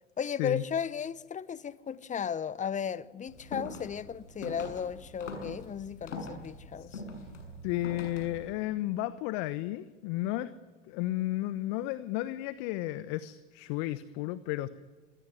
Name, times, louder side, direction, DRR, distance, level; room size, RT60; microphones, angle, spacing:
voice 1, 0.2-7.0, left 7 dB, 20° left, 1.1 m, -35 dB
sound 1, 3.3-8.5, left 2 dB, 75° left, 7.1 m, -43 dB
voice 2, 7.6-10.5 10.9-14.7, left 16 dB, 50° left, 1.2 m, -33 dB
26.0 x 22.5 x 9.9 m
figure-of-eight pair, 85°, 37 cm